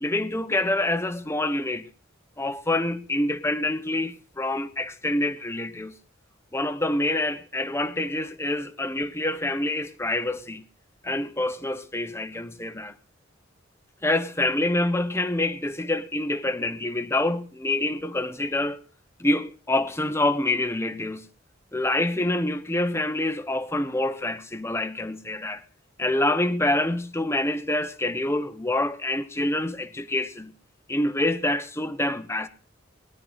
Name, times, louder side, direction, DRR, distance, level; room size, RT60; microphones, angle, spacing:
voice 1, 0.0-1.9 2.4-5.9 6.5-10.6 11.0-12.9 14.0-18.8 19.2-21.3 21.7-25.6 26.0-30.5 30.9-32.5, left 1 dB, 15° left, 1.0 m, -26 dB
21.0 x 12.0 x 4.1 m
head